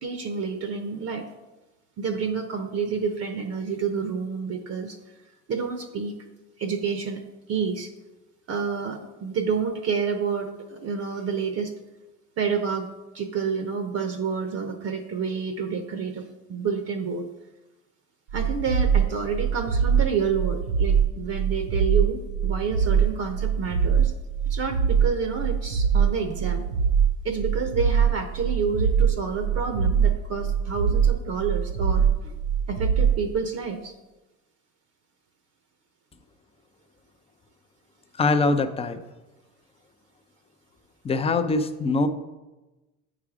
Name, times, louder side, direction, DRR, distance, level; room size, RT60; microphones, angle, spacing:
voice 1, 0.0-1.3 2.0-5.0 5.5-6.3 6.6-7.2 7.5-7.9 8.5-11.7 12.4-17.3 18.3-24.1 24.5-26.7 27.2-32.3 32.7-33.9, right 5 dB, 35° right, 7 dB, 0.7 m, -29 dB
sound 1, 18.3-33.2, right 7 dB, 70° right, 0.9 m, -23 dB
voice 2, 38.2-39.0 41.0-42.1, left 3 dB, 15° left, 8 dB, 0.4 m, -23 dB
8.4 x 4.9 x 4.9 m, 1.1 s
supercardioid pair, 95°, 42 cm